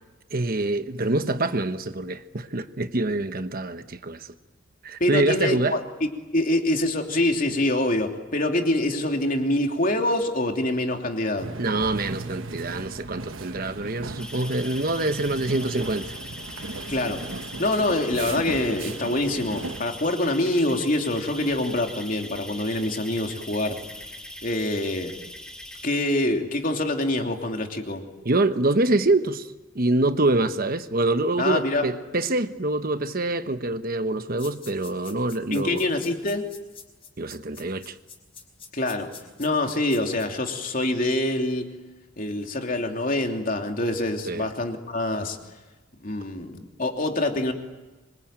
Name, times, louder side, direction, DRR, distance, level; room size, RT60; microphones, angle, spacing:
voice 1, 0.3-4.3 4.8-5.8 11.6-16.1 28.2-29.5 29.7-35.9 37.2-38.0 44.3-44.5, right 2 dB, 45° right, 1.1 m, -25 dB
voice 2, 5.0-11.5 16.9-17.2 17.6-23.8 24.4-25.1 25.8-28.0 31.4-31.9 35.5-36.4 38.7-39.1 39.4-41.7 42.2-45.4 46.0-47.5, left 1 dB, 40° left, 3.0 m, -25 dB
sound 1, 11.4-19.8, right 3 dB, 70° right, 1.2 m, -36 dB
sound 2, 14.2-25.9, left 1 dB, 5° left, 2.1 m, -41 dB
sound 3, 34.4-40.3, left 6 dB, 25° left, 5.0 m, -45 dB
26.0 x 24.5 x 9.0 m
head